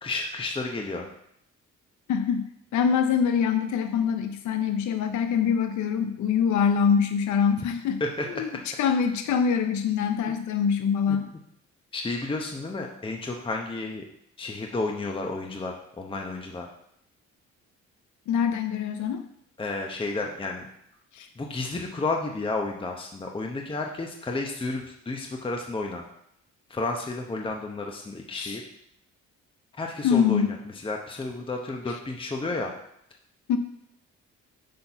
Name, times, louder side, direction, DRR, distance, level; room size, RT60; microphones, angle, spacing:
voice 1, 0.0-1.1 8.0-8.3 11.1-11.2 11.9-14.0 14.4-16.7 19.6-20.7 21.4-26.0 26.7-28.6 29.8-30.5 30.8-32.7, left 3 dB, 15° left, 1 dB, 0.8 m, -31 dB
voice 2, 2.1-2.5 2.7-8.0 8.4-11.3 18.3-19.2 21.1-21.3 28.3-28.6 30.0-30.6 31.9-32.0 33.5-33.6, left 7 dB, 70° left, 7 dB, 0.6 m, -24 dB
6.6 x 4.1 x 5.7 m, 0.74 s
cardioid pair, 90°, 30 cm